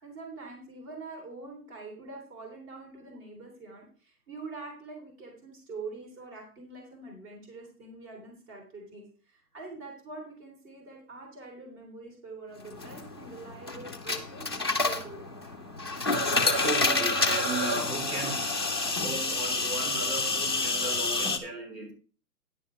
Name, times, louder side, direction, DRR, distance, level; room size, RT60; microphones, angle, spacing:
voice 1, 0.0-15.2, right 3 dB, 25° right, 3.4 m, -44 dB
sound 1, 12.6-21.4, left 3 dB, 20° left, 0.4 m, -29 dB
voice 2, 16.0-18.8 19.0-21.9, right 2 dB, 85° right, 3.7 m, -36 dB
10.5 x 9.8 x 3.3 m
hypercardioid pair, 145°, 46 cm